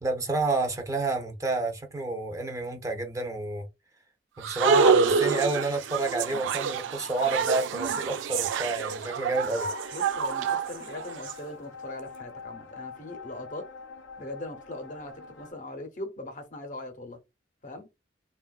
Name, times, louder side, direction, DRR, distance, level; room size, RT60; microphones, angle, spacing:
voice 1, 0.0-3.7 4.4-9.7, right 3 dB, 20° right, 0.4 m, -29 dB
sound 1, 4.4-11.3, right 5 dB, 85° right, 0.3 m, -27 dB
sound 2, 9.6-15.5, left 4 dB, 90° left, 0.5 m, -45 dB
voice 2, 9.9-13.7 14.2-17.2 17.6-17.9, left 2 dB, 45° left, 0.6 m, -40 dB
3.4 x 2.2 x 2.2 m
head